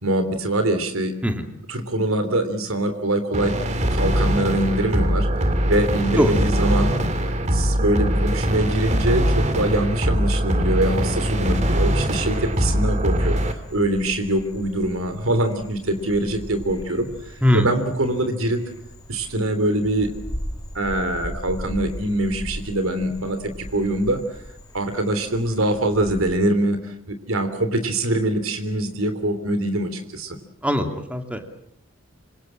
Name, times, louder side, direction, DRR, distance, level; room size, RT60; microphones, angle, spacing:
voice 1, 0.0-1.1 1.7-3.5 3.9-6.9 7.5-13.4 13.7-18.6 19.1-20.1 20.7-24.2 24.7-30.4, right 1 dB, 85° right, 9 dB, 3.4 m, -23 dB
sound 1, 3.3-13.5, equal, 35° right, 2.3 m, -22 dB
Frog, 11.5-26.3, equal, 20° left, 3.8 m, -38 dB
voice 2, 30.6-31.5, equal, 5° right, 5 dB, 2.4 m, -21 dB
27.5 x 25.0 x 7.5 m, 0.74 s
head